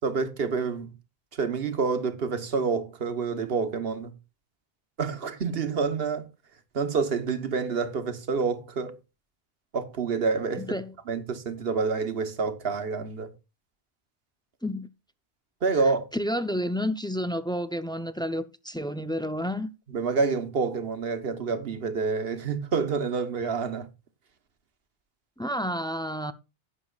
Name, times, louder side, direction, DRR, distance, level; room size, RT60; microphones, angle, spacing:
voice 1, 0.0-0.9 1.3-4.1 5.0-6.3 6.7-8.9 9.7-10.7 11.1-13.3 15.6-16.0 19.9-23.9, right 5 dB, 65° right, 1.3 m, -28 dB
voice 2, 10.5-10.9 14.6-14.9 16.1-19.7 25.4-26.3, equal, 5° left, 0.4 m, -30 dB
15.5 x 7.4 x 2.4 m
omnidirectional pair, 1.1 m